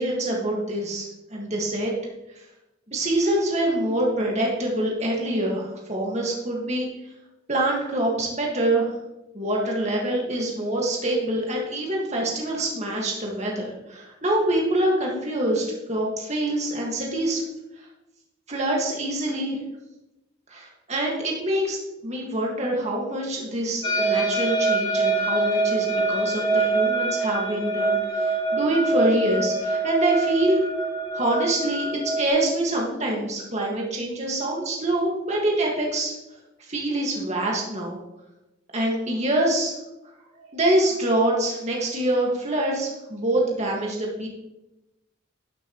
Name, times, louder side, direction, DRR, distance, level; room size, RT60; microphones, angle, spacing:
voice 1, 0.0-1.9 2.4-2.5 2.9-6.9 7.5-9.0 9.3-17.4 17.8-17.9 18.5-19.6 20.5-21.8 22.0-30.6 31.1-36.2 36.6-38.0 38.7-39.8 40.5-44.3, right 1 dB, 35° right, -2 dB, 1.8 m, -25 dB
sound 1, 23.8-32.3, right 2 dB, 25° left, 1.9 m, -24 dB
12.5 x 7.1 x 3.1 m, 0.96 s
head